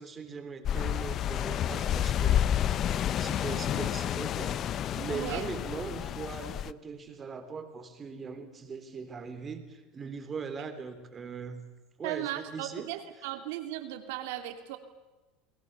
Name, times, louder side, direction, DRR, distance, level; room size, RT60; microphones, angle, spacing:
voice 1, 0.0-2.5 3.2-11.6 12.0-12.9, right 5 dB, 25° right, 8 dB, 3.5 m, -40 dB
sound 1, 0.6-6.7, left 10 dB, 40° left, 0.7 m, -30 dB
voice 2, 5.1-5.4 12.0-14.8, right 13 dB, 75° right, 6 dB, 2.8 m, -36 dB
29.5 x 20.0 x 6.8 m, 1.1 s
supercardioid pair, 125°, 0 cm